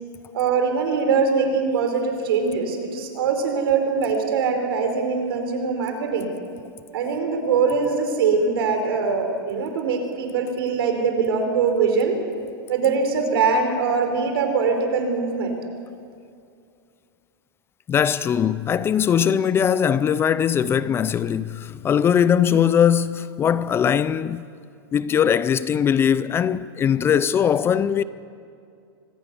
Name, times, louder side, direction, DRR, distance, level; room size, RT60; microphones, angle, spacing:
voice 1, 0.3-6.3 6.9-12.2 12.7-15.6, right 5 dB, 80° right, 4.8 m, -22 dB
voice 2, 17.9-24.4 24.9-28.0, left 8 dB, 20° left, 0.5 m, -20 dB
25.0 x 18.5 x 7.1 m
supercardioid pair, 145°, 12 cm